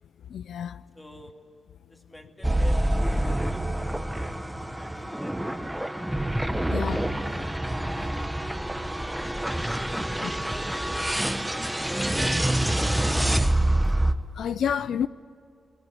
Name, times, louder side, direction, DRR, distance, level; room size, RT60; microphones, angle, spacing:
voice 1, 0.3-0.8 6.7-7.1 10.2-10.3 14.3-15.1, left 8 dB, 80° left, 0.5 m, -29 dB
voice 2, 0.9-1.4 1.9-6.0 6.7-13.1, left 1 dB, 10° left, 2.4 m, -49 dB
sound 1, 2.4-14.1, right 1 dB, 5° right, 1.1 m, -26 dB
20.5 x 20.0 x 9.5 m
cardioid pair, 110°, 0 cm